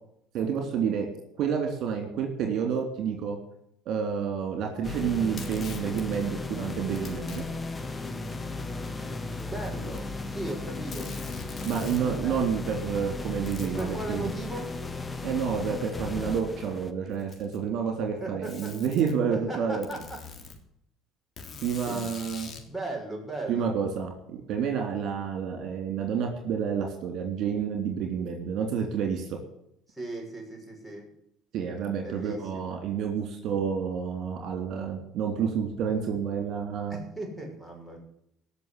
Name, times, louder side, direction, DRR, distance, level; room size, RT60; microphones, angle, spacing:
voice 1, 0.3-1.1 1.4-3.4 3.8-7.4 11.6-14.3 15.2-19.8 21.6-22.5 23.5-29.3 31.5-37.0, right 7 dB, 60° right, 3 dB, 3.4 m, -29 dB
sound 1, 4.8-16.9, left 2 dB, 20° left, 1.4 m, -35 dB
Packing tape duct tape, 5.2-6.0 7.0-7.4 8.3-8.4 9.3-10.2 10.5-10.6 10.9-12.1 13.5-13.9 15.1-15.2 16.2-16.3 17.1-17.7 18.4-19.1 19.8-20.6 21.4-22.7, left 5 dB, 40° left, 3.5 m, -43 dB
voice 2, 9.4-11.2 12.2-12.4 13.6-14.8 18.2-18.7 19.3-20.2 21.8-22.3 22.7-23.7 29.9-31.1 32.0-32.6 36.9-38.0, right 2 dB, ahead, -1 dB, 6.3 m, -37 dB
17.5 x 6.7 x 8.5 m, 0.76 s
supercardioid pair, 90°, 0 cm